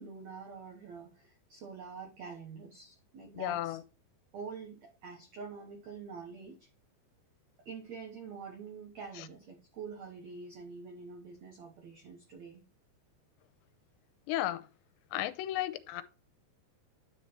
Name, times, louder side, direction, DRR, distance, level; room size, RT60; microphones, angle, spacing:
voice 1, 0.0-3.8 4.3-6.7 7.6-12.6, right 5 dB, 85° right, 1.5 m, -46 dB
voice 2, 3.4-3.8 14.3-14.6 15.1-16.0, left 14 dB, 85° left, 2.8 m, -33 dB
9.8 x 4.5 x 4.3 m
omnidirectional pair, 5.0 m